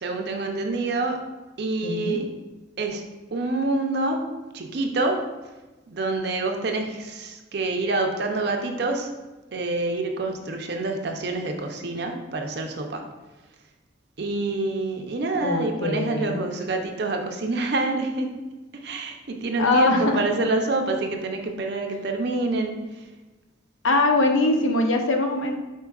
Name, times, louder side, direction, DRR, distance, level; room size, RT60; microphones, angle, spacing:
voice 1, 0.0-1.2 1.6-2.3 2.8-3.0 3.3-4.2 4.5-5.2 5.9-9.1 9.5-13.0 14.2-18.4 18.7-23.0, right 2 dB, 55° right, 3 dB, 0.5 m, -27 dB
voice 2, 1.8-2.2 15.4-16.4 19.6-20.2 23.8-25.6, left 2 dB, 75° left, 4 dB, 0.6 m, -22 dB
4.5 x 4.4 x 2.3 m, 1.2 s
head